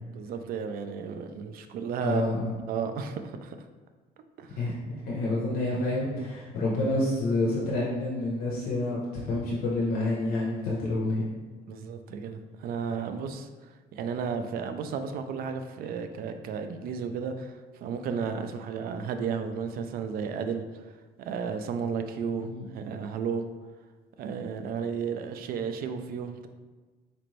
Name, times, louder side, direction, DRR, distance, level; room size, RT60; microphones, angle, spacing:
voice 1, 0.1-2.2 2.7-3.6 4.4-4.6 11.7-20.9 21.2-23.4 24.2-26.5, right 6 dB, 60° right, 8 dB, 0.4 m, -33 dB
voice 2, 2.0-2.5 4.6-11.2 22.5-22.8, left 2 dB, 65° left, -5 dB, 0.7 m, -28 dB
4.2 x 2.5 x 3.1 m, 1.3 s
cardioid pair, 110°, 17 cm